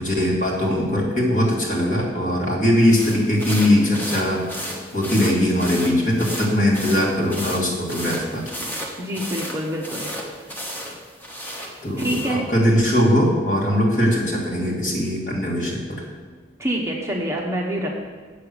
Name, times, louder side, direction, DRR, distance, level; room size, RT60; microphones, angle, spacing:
voice 1, 0.0-8.4 11.8-16.0, equal, 45° left, -3 dB, 2.4 m, -20 dB
sound 1, 2.9-12.4, equal, 10° left, 1.2 m, -33 dB
voice 2, 9.0-10.1 12.0-12.4 16.6-18.0, equal, 15° right, -1 dB, 1.0 m, -26 dB
8.2 x 6.6 x 7.0 m, 1.5 s
head